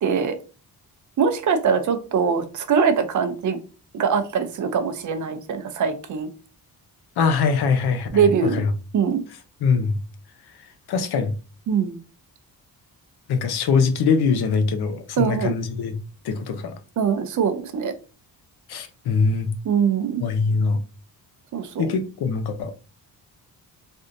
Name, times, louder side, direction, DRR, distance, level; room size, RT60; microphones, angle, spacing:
voice 1, 0.0-0.4 1.2-3.6 3.9-6.3 8.1-8.6 8.9-9.2 11.7-12.0 15.2-15.5 17.0-17.9 19.6-20.2 21.5-22.0, right 6 dB, 50° right, 0.5 m, -22 dB
voice 2, 7.2-8.7 9.6-10.0 10.9-11.3 13.3-16.0 16.2-16.8 18.7-19.5 20.2-20.8 21.8-22.7, left 5 dB, 75° left, 0.6 m, -22 dB
3.4 x 2.6 x 2.5 m
wide cardioid pair, 150°, 39 cm